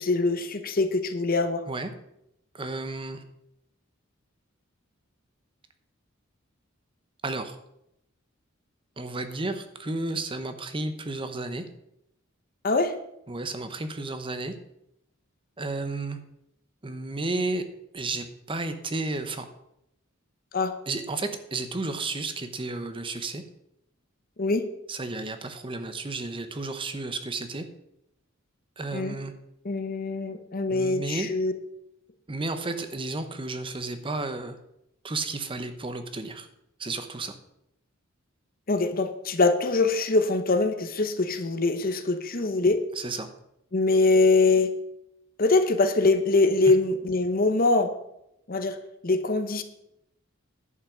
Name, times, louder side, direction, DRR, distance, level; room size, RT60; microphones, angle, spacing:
voice 1, 0.0-1.6 12.6-12.9 20.5-20.7 24.4-24.7 28.9-29.2 29.6-31.5 38.7-42.8 43.7-44.7 45.4-47.9 48.5-48.8 49.0-49.6, left 3 dB, 45° left, 10 dB, 0.9 m, -23 dB
voice 2, 2.5-3.2 7.2-7.6 9.0-11.7 13.3-14.5 15.6-16.2 16.8-17.6 17.9-19.5 20.9-23.4 24.9-27.7 28.8-29.3 30.7-31.3 32.3-34.6 35.0-36.5 36.8-37.3 42.9-43.3 46.6-46.8, right 2 dB, 25° right, 9 dB, 0.9 m, -32 dB
11.0 x 5.8 x 7.2 m, 0.81 s
head